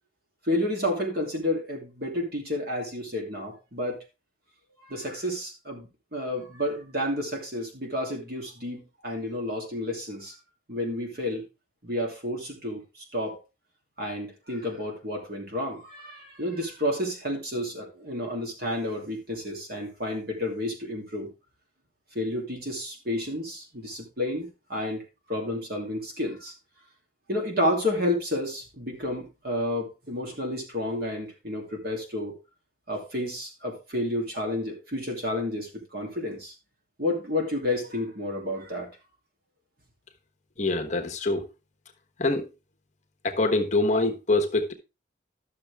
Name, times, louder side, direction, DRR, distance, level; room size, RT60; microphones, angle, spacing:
voice 1, 0.5-4.0 4.8-10.3 10.7-11.4 11.8-13.4 14.0-21.3 22.1-25.0 25.3-26.5 27.3-32.4 32.9-36.5 37.0-38.9, left 1 dB, 50° right, 2.8 m, -30 dB
voice 2, 40.6-41.4 42.2-42.4 43.2-44.7, left 2 dB, 40° left, 1.2 m, -24 dB
12.0 x 6.6 x 3.5 m
head